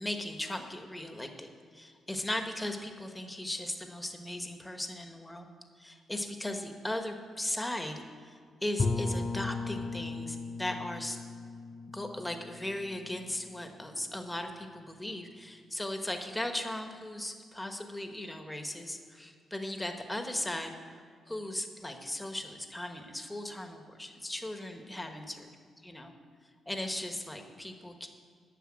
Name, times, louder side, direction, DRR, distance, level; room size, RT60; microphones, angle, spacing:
voice 1, 0.0-5.5 5.8-11.2 11.9-20.7 21.3-25.4 25.8-26.1 26.7-28.1, left 1 dB, 10° left, 5 dB, 1.2 m, -37 dB
Bowed string instrument, 8.8-13.6, left 3 dB, 35° left, 0.5 m, -36 dB
10.0 x 6.7 x 8.8 m, 2.1 s
cardioid pair, 90°, 0 cm